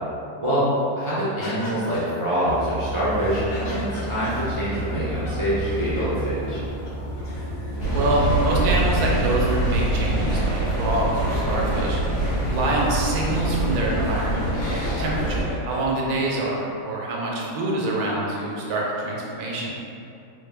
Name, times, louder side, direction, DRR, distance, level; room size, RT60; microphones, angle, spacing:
voice 1, 1.0-6.6, equal, 55° right, -11 dB, 0.3 m, -25 dB
sound 1, 1.4-6.3 6.5-6.6 6.9-12.5 13.1-13.2 13.4-16.0, left 1 dB, 45° left, 0.7 m, -39 dB
sound 2, 2.4-8.6, right 1 dB, 65° left, 1.1 m, -31 dB
sound 3, 7.8-15.5, right 1 dB, 85° left, 2.2 m, -24 dB
voice 2, 7.9-12.0 12.5-14.4 14.7-19.7, right 2 dB, 85° right, -3 dB, 1.2 m, -25 dB
4.2 x 2.1 x 3.4 m, 2.6 s
omnidirectional pair, 1.6 m